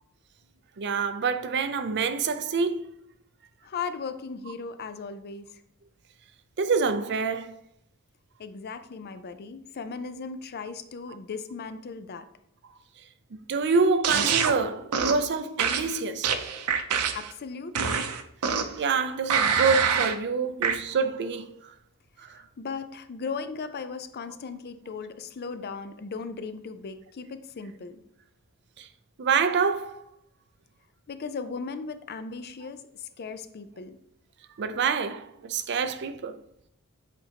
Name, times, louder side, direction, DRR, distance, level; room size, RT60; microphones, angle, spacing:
voice 1, 0.8-2.9 6.6-7.6 13.3-16.3 18.8-21.7 22.2-22.4 28.8-28.9 29.2-30.0 34.6-36.4, right 5 dB, 50° right, 0.5 m, -27 dB
voice 2, 3.6-5.6 8.4-12.3 17.1-18.1 22.2-28.0 31.1-34.0, left 5 dB, 45° left, 0.5 m, -37 dB
sound 1, 14.0-14.5 14.9-15.2 15.6-17.3 17.7-18.8 19.3-20.2 20.6-20.8, right 6 dB, 90° right, 0.6 m, -25 dB
7.9 x 4.4 x 2.8 m
head